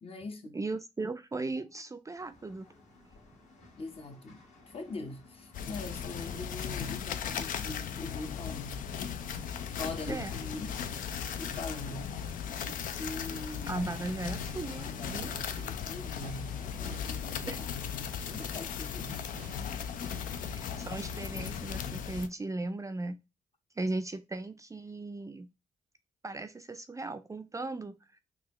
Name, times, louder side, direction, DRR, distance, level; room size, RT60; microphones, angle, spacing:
voice 1, 0.0-0.6 3.8-8.8 9.8-10.8 11.4-12.1 12.9-13.9 14.9-19.3, left 2 dB, 45° left, 0.8 m, -42 dB
voice 2, 0.5-2.7 10.1-10.3 13.7-15.3 17.5-17.6 20.5-23.2 23.8-25.5 26.2-27.9, right 2 dB, 25° right, 0.4 m, -37 dB
sound 1, 2.1-21.9, left 2 dB, 60° left, 1.6 m, -59 dB
sound 2, 5.5-22.3, left 8 dB, 80° left, 0.4 m, -37 dB
sound 3, 5.8-22.0, right 8 dB, 85° right, 0.5 m, -56 dB
3.8 x 2.3 x 3.0 m
cardioid pair, 60°, 14 cm